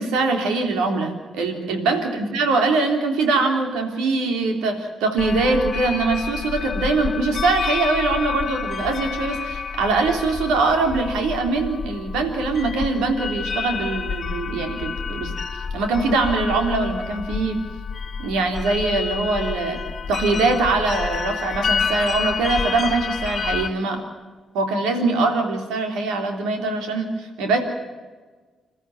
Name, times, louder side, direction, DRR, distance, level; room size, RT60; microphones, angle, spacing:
voice 1, 0.0-15.3 15.7-17.6 18.2-19.8 20.1-24.0 24.5-27.6, right 3 dB, 75° right, 5 dB, 3.5 m, -22 dB
Wind Chimes, 5.2-23.7, left 6 dB, 50° left, 1.5 m, -29 dB
27.5 x 13.5 x 9.5 m, 1.4 s
hypercardioid pair, 45°, 0 cm